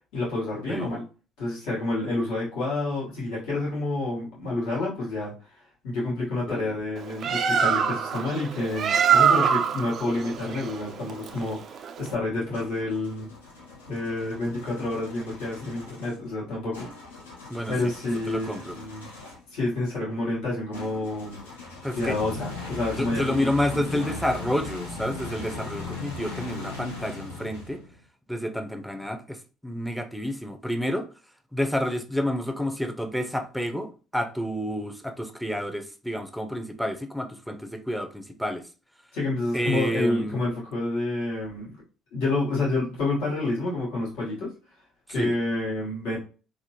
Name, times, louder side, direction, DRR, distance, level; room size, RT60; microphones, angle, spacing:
voice 1, 0.1-1.0 1.4-5.3 5.8-13.3 13.9-16.9 17.7-19.1 19.5-21.4 22.0-23.3 23.7-24.2 39.1-41.7 42.1-44.5 45.1-46.2, left 2 dB, 70° left, -6 dB, 1.2 m, -29 dB
Bird, 7.0-12.2, right 7 dB, 50° right, 0.3 m, -24 dB
sound 1, 10.1-11.6 12.5-19.5 20.7-28.0, left 3 dB, 90° left, 0.7 m, -40 dB
voice 2, 18.3-18.8 21.8-22.1 23.0-27.8 28.3-29.4 29.6-31.1 31.5-38.6 39.5-40.4 45.2-45.3, equal, ahead, 7 dB, 0.5 m, -29 dB
3.5 x 2.1 x 2.7 m, 0.35 s
hypercardioid pair, 55°, 0 cm